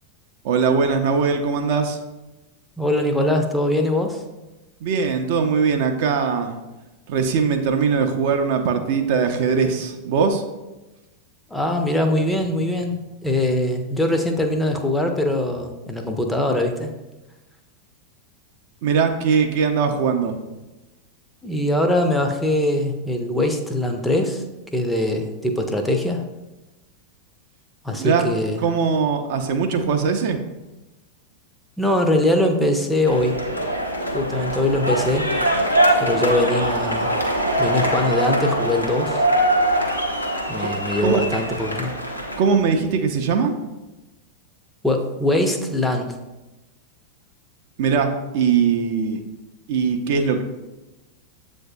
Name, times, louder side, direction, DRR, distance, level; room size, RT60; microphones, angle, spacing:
voice 1, 0.4-2.0 4.8-6.5 7.1-10.4 18.8-20.3 28.0-28.3 28.6-30.4 40.6-40.7 41.0-41.2 42.4-43.5 47.8-49.2 49.7-50.4, right 5 dB, 50° right, 5 dB, 0.4 m, -21 dB
voice 2, 2.8-4.2 11.5-13.0 13.2-16.9 21.4-24.4 24.7-26.2 27.8-28.6 31.8-33.4 34.1-35.3 36.0-37.1 37.6-39.2 40.5-41.9 44.8-46.2, left 1 dB, 5° left, 4 dB, 0.5 m, -22 dB
sound 1, 33.1-42.4, right 1 dB, 90° left, 0.6 m, -22 dB
7.6 x 2.6 x 2.3 m, 1.0 s
figure-of-eight pair, 90°, 0 cm